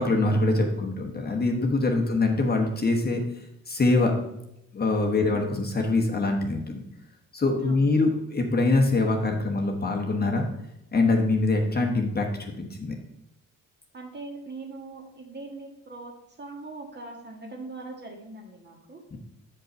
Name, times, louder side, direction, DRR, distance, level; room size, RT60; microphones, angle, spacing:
voice 1, 0.0-3.2 3.7-4.1 4.7-6.8 7.3-10.5 10.9-12.9 19.1-19.2, left 2 dB, 30° left, 2 dB, 1.1 m, -24 dB
voice 2, 7.6-7.9 13.9-19.0, right 3 dB, 30° right, 2 dB, 1.6 m, -41 dB
7.3 x 5.3 x 5.2 m, 0.82 s
cardioid pair, 105°, 34 cm